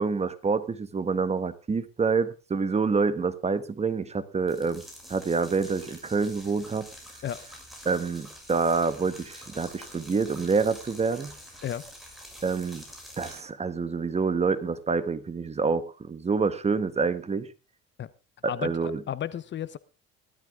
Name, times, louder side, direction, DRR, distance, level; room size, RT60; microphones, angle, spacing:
voice 1, 0.0-4.8 5.1-6.9 7.8-11.3 12.4-12.8 13.2-17.5 18.6-19.0, right 4 dB, 20° right, 1.4 m, -27 dB
sound 1, 4.4-13.4, equal, ahead, 6.6 m, -47 dB
voice 2, 18.5-19.8, left 10 dB, 40° left, 0.9 m, -33 dB
15.5 x 13.0 x 3.7 m
cardioid pair, 115°, 30 cm